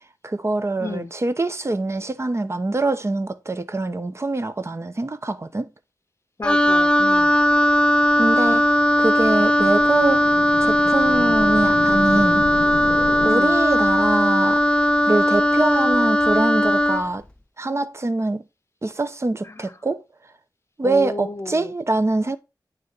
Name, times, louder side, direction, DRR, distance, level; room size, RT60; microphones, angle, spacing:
voice 1, 0.2-5.7 8.2-8.6 9.0-10.3 10.6-12.4 13.2-14.6 15.1-17.2 17.6-18.4 18.8-20.0 20.8-22.4, right 2 dB, 40° right, 0.9 m, -24 dB
voice 2, 0.8-1.1 6.4-7.4 13.3-13.6 19.4-19.7 20.8-21.7, left 2 dB, 40° left, 0.8 m, -32 dB
Wind instrument woodwind instrument, 6.4-17.1, equal, 15° left, 0.6 m, -18 dB
sound 1, 8.5-13.3, left 5 dB, 65° left, 0.7 m, -33 dB
9.5 x 3.3 x 5.5 m
wide cardioid pair, 85°, 7 cm